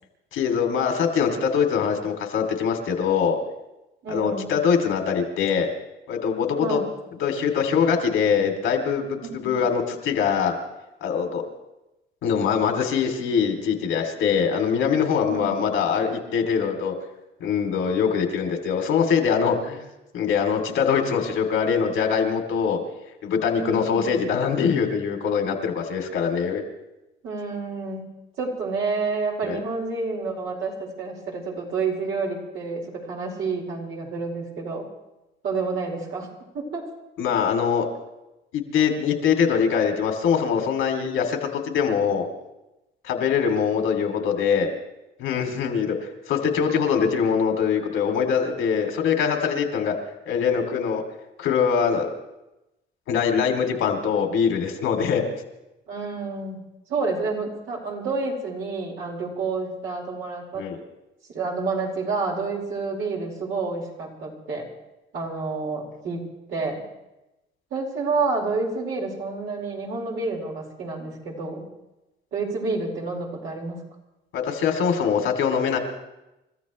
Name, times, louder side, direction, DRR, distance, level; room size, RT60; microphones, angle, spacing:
voice 1, 0.3-3.4 4.1-5.7 6.1-6.8 7.2-10.6 11.0-11.4 12.2-16.9 17.4-19.8 20.1-22.8 23.2-26.6 29.5-29.6 37.2-37.8 38.5-42.3 43.0-44.7 45.2-46.0 46.3-49.9 50.3-51.0 51.4-52.1 53.1-55.2 60.5-60.8 74.3-75.8, left 6 dB, 90° left, 3 dB, 2.8 m, -23 dB
voice 2, 4.0-4.5 6.6-6.9 9.2-9.6 15.3-15.6 23.5-24.1 27.2-28.1 28.4-34.8 35.4-36.3 36.5-36.8 55.9-56.6 56.9-60.7 61.3-64.7 65.1-66.8 67.7-71.7 72.3-73.8, right 4 dB, 80° right, -2 dB, 4.7 m, -29 dB
29.5 x 14.0 x 3.2 m, 0.96 s
cardioid pair, 90°, 20 cm